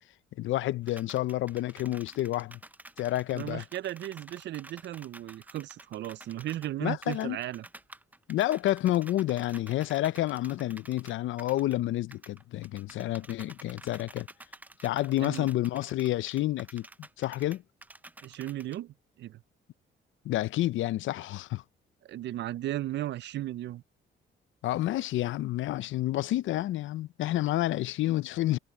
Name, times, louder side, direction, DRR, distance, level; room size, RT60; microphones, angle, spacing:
voice 1, 0.4-2.6 3.0-3.6 6.8-7.4 8.3-14.3 14.8-16.9 17.2-17.6 20.2-21.6 24.6-28.6, left 15 dB, 75° left, 0.6 m, -29 dB
sound 1, 0.9-6.7 7.0-11.8 12.1-18.8, right 2 dB, 10° right, 0.6 m, -50 dB
voice 2, 3.3-7.7 15.2-15.5 18.2-19.4 22.0-23.8, right 13 dB, 65° right, 0.5 m, -36 dB
cardioid pair, 90°, 20 cm